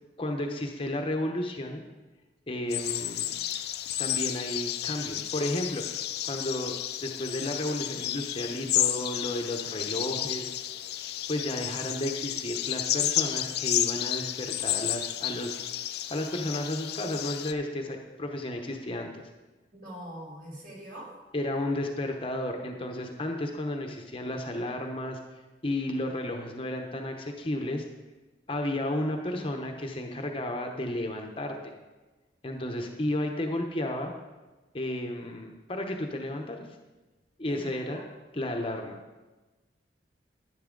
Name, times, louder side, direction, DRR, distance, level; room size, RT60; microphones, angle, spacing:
voice 1, 0.2-1.8 2.5-3.4 4.0-5.8 6.2-6.7 7.0-10.5 11.3-15.7 16.1-19.2 21.3-25.2 25.6-27.9 28.5-31.7 32.4-34.1 34.7-36.7 37.4-38.0 38.3-39.0, left 1 dB, 30° left, 3 dB, 0.9 m, -32 dB
sound 1, 2.7-17.5, left 12 dB, 60° left, 0.5 m, -32 dB
voice 2, 19.7-21.2 37.5-38.0, equal, 50° right, -3 dB, 4.1 m, -43 dB
11.0 x 10.5 x 3.8 m, 1.2 s
head